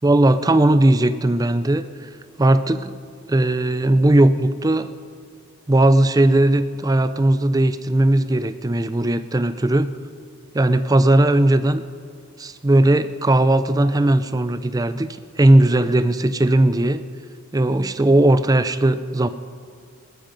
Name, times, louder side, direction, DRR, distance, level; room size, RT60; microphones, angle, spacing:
voice 1, 0.0-2.1 2.4-3.0 3.3-4.9 5.7-9.9 10.5-11.8 12.4-15.1 15.4-17.0 17.5-19.3, right 1 dB, 15° right, 12 dB, 0.4 m, -17 dB
20.5 x 13.0 x 5.3 m, 2.2 s
head